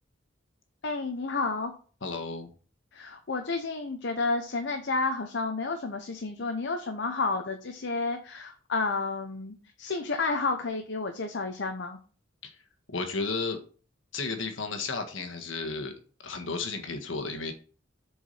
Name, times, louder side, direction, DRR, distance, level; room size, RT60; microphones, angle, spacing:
voice 1, 0.8-1.7 2.9-12.0, left 3 dB, 65° left, 5 dB, 0.9 m, -31 dB
voice 2, 2.0-2.5 12.4-12.5 12.9-13.6 14.1-15.9 16.2-17.5, left 3 dB, 80° left, 6 dB, 1.5 m, -33 dB
7.1 x 4.9 x 5.5 m, 0.40 s
head